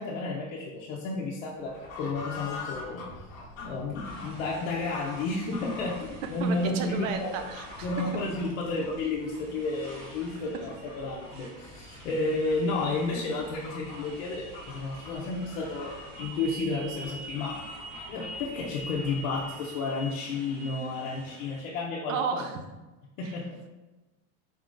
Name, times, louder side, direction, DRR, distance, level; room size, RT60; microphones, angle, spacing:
voice 1, 0.0-3.2 3.6-7.3 7.8-17.6 18.1-22.2 23.2-23.7, left 3 dB, 75° left, -4 dB, 0.7 m, -32 dB
Fowl / Bird, 1.5-19.6, left 3 dB, 50° left, 1.0 m, -45 dB
Motorcycle, 4.0-21.6, right 2 dB, 55° right, 0.9 m, -47 dB
voice 2, 6.4-7.9 22.1-22.6 23.2-23.4, right 6 dB, 75° right, 6 dB, 0.7 m, -32 dB
4.1 x 3.6 x 2.5 m, 1.1 s
supercardioid pair, 165°, 39 cm